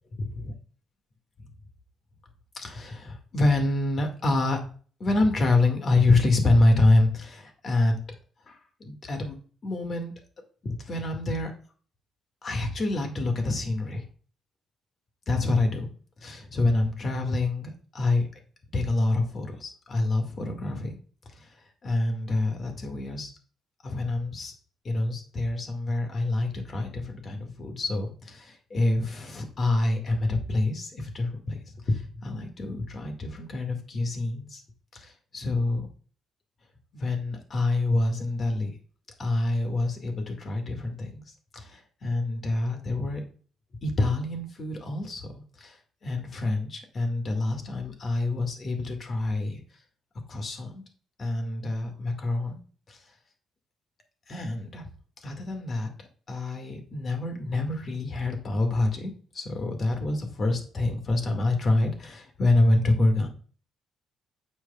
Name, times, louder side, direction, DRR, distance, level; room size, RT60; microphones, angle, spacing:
voice 1, 2.5-4.6 5.0-8.0 8.5-9.4 9.6-10.1 10.6-11.5 12.4-14.1 15.3-15.9 16.2-18.3 18.7-21.0 21.3-21.5 21.8-23.3 23.8-24.5 24.8-34.6 34.9-35.9 36.9-38.7 39.2-41.2 41.5-43.2 43.8-45.3 45.6-49.6 50.3-50.8 51.2-52.6 52.9-53.0 54.3-54.9 55.2-63.3, left 2 dB, 45° left, 4 dB, 1.9 m, -27 dB
9.0 x 6.3 x 2.3 m, 0.41 s
cardioid pair, 90°, 0 cm